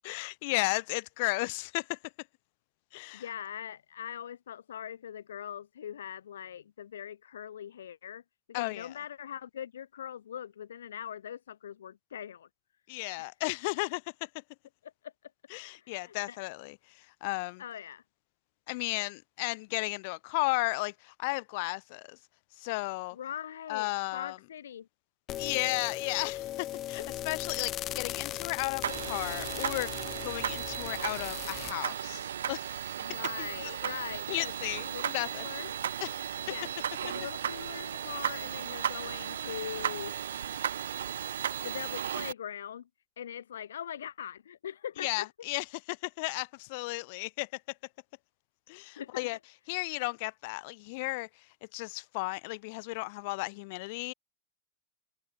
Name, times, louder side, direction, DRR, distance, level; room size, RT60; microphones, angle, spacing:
voice 1, 0.0-2.0 2.9-3.2 8.5-8.9 12.9-14.3 15.5-17.6 18.7-22.2 22.6-23.2 23.7-24.4 25.4-33.5 34.3-35.4 36.0-36.1 45.0-47.6 48.7-49.4 49.7-51.3 51.7-54.1, left 26 dB, 55° left, 2.9 m, -34 dB
voice 2, 3.1-8.2 8.5-12.5 13.2-13.3 14.8-15.3 15.8-16.4 17.6-18.0 23.1-24.9 27.0-27.1 33.0-34.5 34.8-35.7 36.5-36.7 37.0-40.2 41.6-42.9 43.2-45.3 49.0-49.3, left 9 dB, 85° left, 4.1 m, -42 dB
sound 1, 25.3-31.7, left 13 dB, 35° left, 1.3 m, -38 dB
sound 2, 28.8-42.3, right 9 dB, 90° right, 3.6 m, -35 dB
hypercardioid pair, 125°, 0 cm